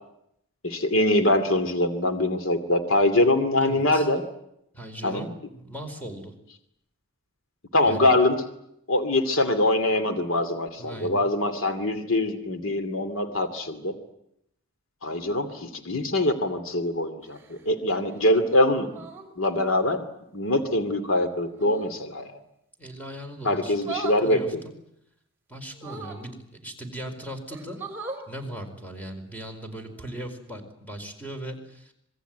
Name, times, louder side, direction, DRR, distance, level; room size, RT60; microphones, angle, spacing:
voice 1, 0.6-4.2 5.0-5.3 7.7-8.4 8.9-13.9 15.0-19.1 19.4-20.0 20.3-22.3 23.4-24.4, left 1 dB, 75° left, 9 dB, 2.5 m, -23 dB
voice 2, 3.6-4.1 4.7-6.3 7.8-8.2 10.8-11.3 22.8-23.8 24.2-24.5 25.5-26.4 26.6-27.8 28.3-31.9, right 1 dB, 10° left, 5 dB, 4.6 m, -38 dB
sound 1, 17.2-17.7 18.9-19.3 21.5-22.0 23.8-24.2 25.7-26.3 27.0-27.1 27.5-28.3 29.9-30.1, right 4 dB, 10° right, 4.6 m, -38 dB
26.5 x 21.0 x 9.2 m, 0.77 s
head